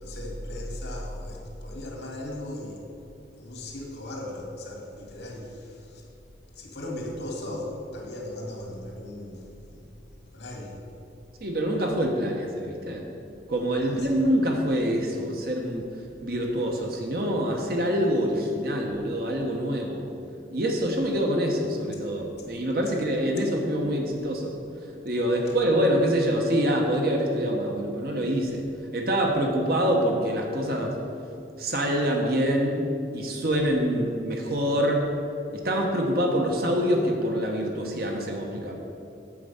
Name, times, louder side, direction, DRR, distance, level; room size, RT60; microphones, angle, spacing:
voice 1, 0.0-2.8 3.4-6.1 6.6-9.9 10.3-10.8 13.8-14.1 25.4-25.5, left 1 dB, 80° left, -1 dB, 2.3 m, -37 dB
voice 2, 11.4-13.0 13.5-15.9 16.2-20.0 20.5-24.5 25.0-28.6 28.9-31.0 31.6-32.8 33.1-35.1 35.5-38.7, equal, 55° right, 1 dB, 1.0 m, -25 dB
8.7 x 7.5 x 5.6 m, 2.7 s
head